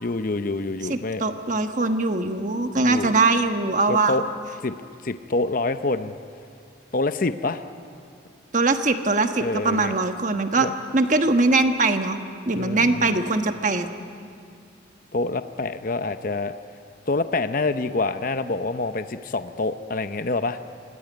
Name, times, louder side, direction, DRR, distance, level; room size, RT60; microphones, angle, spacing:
voice 1, 0.0-1.2 2.8-3.1 3.9-4.2 4.6-4.7 5.0-6.1 6.9-7.6 9.4-9.9 10.6-10.7 12.5-13.1 15.1-16.6 17.1-20.6, left 3 dB, 45° left, 10 dB, 0.7 m, -26 dB
voice 2, 0.9-4.1 8.5-10.7 10.9-12.2 12.5-13.9, right 3 dB, 40° right, 7 dB, 1.3 m, -21 dB
25.0 x 19.0 x 9.4 m, 2.3 s
head